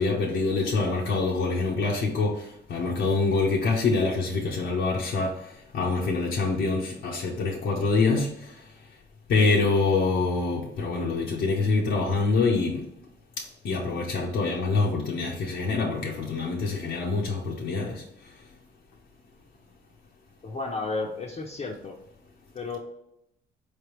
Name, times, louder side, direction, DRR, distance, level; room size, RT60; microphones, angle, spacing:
voice 1, 0.0-2.3 2.7-5.3 5.7-8.3 9.3-12.8 13.6-18.0, left 3 dB, 70° left, -3 dB, 0.9 m, -25 dB
voice 2, 20.4-22.0 22.5-22.8, left 3 dB, 35° left, -1 dB, 0.7 m, -33 dB
4.3 x 3.4 x 3.0 m, 0.78 s
cardioid pair, 90°, 20 cm